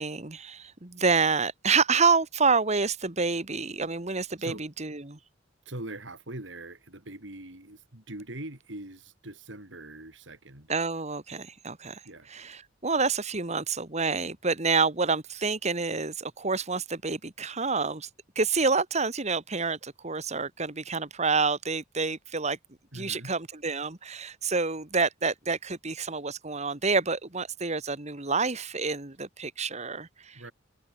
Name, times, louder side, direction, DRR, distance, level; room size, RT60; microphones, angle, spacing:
voice 1, 0.0-5.2 10.7-12.0 12.3-18.1 18.4-22.6 22.9-30.4, right 4 dB, 35° right, 1.9 m, -28 dB
voice 2, 5.7-10.7 12.0-12.3 22.9-23.3 30.3-30.5, right 1 dB, 65° right, 4.2 m, -42 dB
head